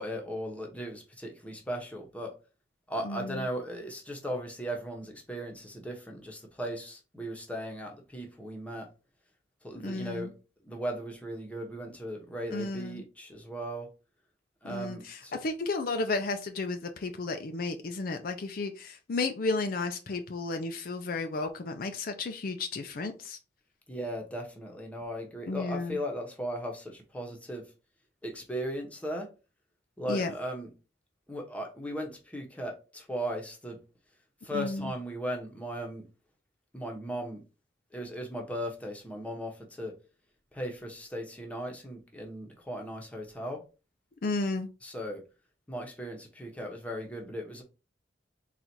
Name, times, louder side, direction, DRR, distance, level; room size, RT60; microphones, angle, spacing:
voice 1, 0.0-2.3 2.9-8.9 9.6-10.3 10.6-13.9 14.6-15.4 23.9-27.7 28.2-29.3 30.0-30.7 31.3-33.8 34.4-36.1 36.7-37.4 37.9-39.9 40.5-43.6 44.8-45.2 45.7-47.6, equal, 10° left, 0.9 m, -37 dB
voice 2, 3.0-3.5 9.8-10.3 12.5-13.0 14.6-23.4 25.5-26.0 30.1-30.3 34.5-34.9 44.2-44.7, left 3 dB, 55° left, 0.4 m, -33 dB
4.0 x 2.4 x 4.3 m
head